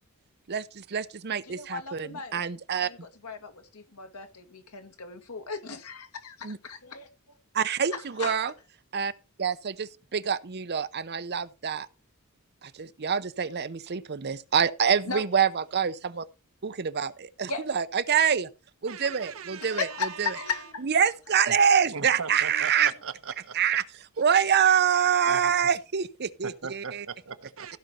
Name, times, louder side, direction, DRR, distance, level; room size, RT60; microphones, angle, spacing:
voice 1, 0.5-2.9 6.4-6.6 7.5-8.5 8.9-9.1 9.4-11.9 12.6-16.3 16.6-18.5 18.8-20.3 20.8-22.9 23.5-23.8 24.2-27.1, right 7 dB, 50° right, 0.7 m, -26 dB
voice 2, 1.5-2.4 2.7-3.0 3.2-7.1 7.9-8.4 15.1-15.2 17.5-17.6 19.6-20.9 22.5-22.9 25.2-25.5, left 5 dB, 90° left, 1.7 m, -36 dB
voice 3, 18.9-20.7 21.5-21.6 21.9-23.6 25.3-25.5 26.4-27.8, right 5 dB, 65° right, 1.0 m, -39 dB
15.5 x 5.3 x 4.3 m
head